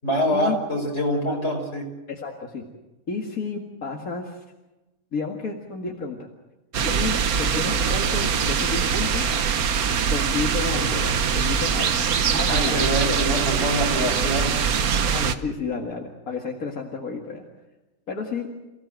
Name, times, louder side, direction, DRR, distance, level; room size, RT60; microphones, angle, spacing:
voice 1, 0.0-1.8 12.3-14.9, equal, 45° left, 1 dB, 5.8 m, -25 dB
voice 2, 2.1-2.6 3.1-4.4 5.1-6.3 6.8-9.3 10.1-12.0 12.3-13.2 15.0-17.4 18.1-18.5, left 4 dB, 75° left, 0 dB, 2.5 m, -31 dB
sound 1, 6.7-15.3, right 7 dB, 85° right, 1.6 m, -23 dB
29.0 x 17.0 x 7.6 m, 1.1 s
omnidirectional pair, 1.5 m